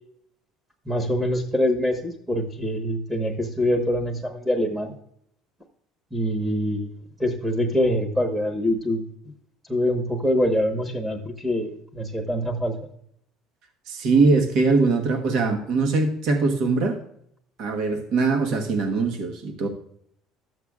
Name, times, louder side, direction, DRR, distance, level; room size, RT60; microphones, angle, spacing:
voice 1, 0.9-4.9 6.1-6.9 7.2-9.0 9.7-12.7, equal, 10° right, 1 dB, 1.2 m, -24 dB
voice 2, 13.9-17.0 17.6-19.7, right 3 dB, 65° right, 4 dB, 1.3 m, -22 dB
13.0 x 7.9 x 2.4 m, 0.70 s
cardioid pair, 110°, 0 cm